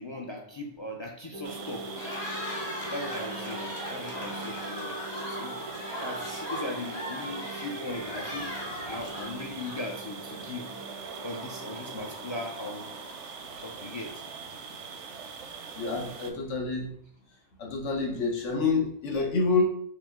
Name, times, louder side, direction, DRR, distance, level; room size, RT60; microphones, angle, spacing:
voice 1, 0.0-1.9 2.9-5.6 6.0-8.5 8.8-10.7 11.0-12.9 13.6-14.2, left 2 dB, 50° left, 1 dB, 0.3 m, -39 dB
sound 1, 1.3-13.1, right 2 dB, 60° right, 0.3 m, -43 dB
sound 2, 1.4-16.3, right 5 dB, 85° right, 0.9 m, -42 dB
Cheering, 1.8-10.1, left 1 dB, 65° left, 1.4 m, -38 dB
voice 2, 15.7-16.9 17.6-19.6, left 4 dB, 90° left, 0 dB, 1.2 m, -28 dB
5.4 x 2.1 x 3.6 m, 0.66 s
omnidirectional pair, 1.2 m